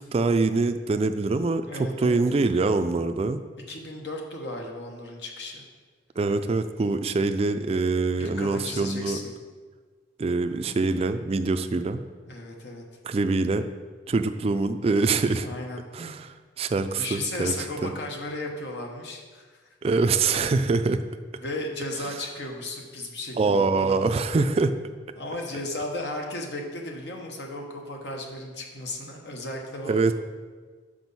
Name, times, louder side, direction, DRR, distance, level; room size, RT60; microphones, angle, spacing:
voice 1, 0.1-3.4 6.2-9.2 10.2-12.0 13.1-13.7 14.1-15.5 15.9-17.5 17.8-17.9 19.8-21.0 23.4-24.7 29.9-30.1, right 3 dB, 35° right, 9 dB, 0.3 m, -24 dB
voice 2, 1.7-2.2 3.7-5.6 8.2-9.3 12.3-12.8 15.4-15.8 16.9-19.7 21.4-24.0 25.2-30.0, left 2 dB, 70° left, 1 dB, 1.0 m, -35 dB
6.1 x 5.0 x 5.4 m, 1.5 s
head